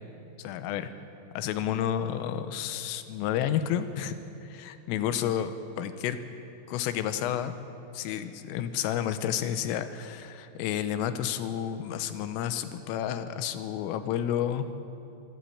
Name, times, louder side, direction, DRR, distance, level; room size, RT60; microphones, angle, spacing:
voice 1, 0.4-0.9 1.4-4.1 4.4-6.2 6.7-7.5 7.9-14.9, left 10 dB, 85° left, 11 dB, 3.5 m, -31 dB
26.5 x 11.5 x 8.6 m, 2.8 s
omnidirectional pair, 5.8 m